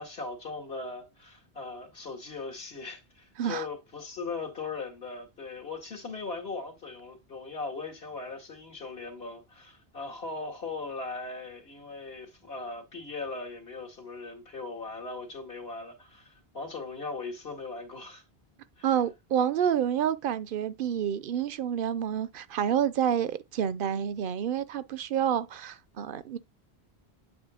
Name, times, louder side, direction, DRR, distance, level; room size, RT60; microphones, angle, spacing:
voice 1, 0.0-18.2 18.8-18.9, left 3 dB, 70° left, 2.1 m, -39 dB
voice 2, 18.8-26.4, right 9 dB, 60° right, 0.7 m, -28 dB
8.1 x 3.0 x 4.9 m
omnidirectional pair, 1.1 m